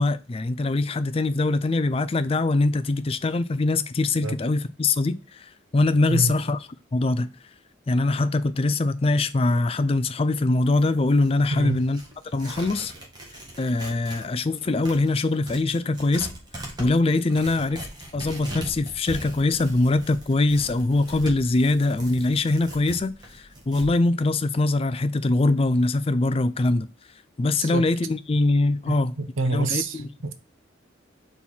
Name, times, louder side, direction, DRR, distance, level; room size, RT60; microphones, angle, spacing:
voice 1, 0.0-6.6 6.9-7.3 7.9-12.0 12.3-12.9 13.6-16.3 16.8-17.9 18.1-26.9 27.4-29.1 29.5-30.1, left 2 dB, 30° left, 0.4 m, -23 dB
Tearing, 10.6-14.3 14.6-23.9, right 1 dB, 20° right, 1.6 m, -40 dB
voice 2, 11.5-11.8 27.6-27.9 28.9-30.5, right 3 dB, 80° right, 0.8 m, -27 dB
4.6 x 4.3 x 5.4 m
head